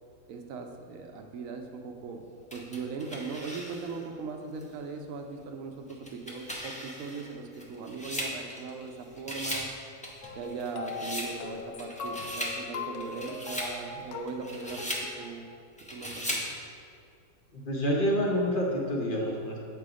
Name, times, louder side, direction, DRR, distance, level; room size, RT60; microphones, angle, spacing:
voice 1, 0.3-2.2 2.5-9.7 10.3-14.9 15.2-15.5 15.9-16.4, right 4 dB, 65° right, 4 dB, 1.0 m, -39 dB
sound 1, 2.5-4.0 4.6-4.7 5.9-8.9 9.2-9.7 10.0-11.3 11.8-12.6 13.0-13.7 14.3-15.1 15.8-16.5, equal, 10° left, 0.4 m, -37 dB
sound 2, 10.2-15.4, left 4 dB, 75° left, 1.1 m, -40 dB
voice 2, 17.5-19.6, equal, 40° left, -2 dB, 0.9 m, -28 dB
7.4 x 3.5 x 4.9 m, 2.3 s
omnidirectional pair, 1.6 m